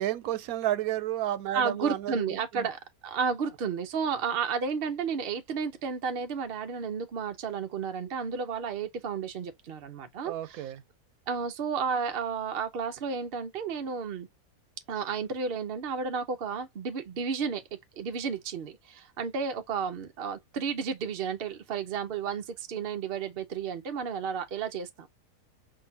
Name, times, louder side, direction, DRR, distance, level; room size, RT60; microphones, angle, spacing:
voice 1, 0.0-2.7 10.2-10.8, right 13 dB, 75° right, 1.0 m, -31 dB
voice 2, 1.5-10.7 11.3-14.3 14.9-17.6 18.0-25.1, right 6 dB, 60° right, 0.6 m, -32 dB
5.8 x 2.6 x 2.7 m
omnidirectional pair, 1.6 m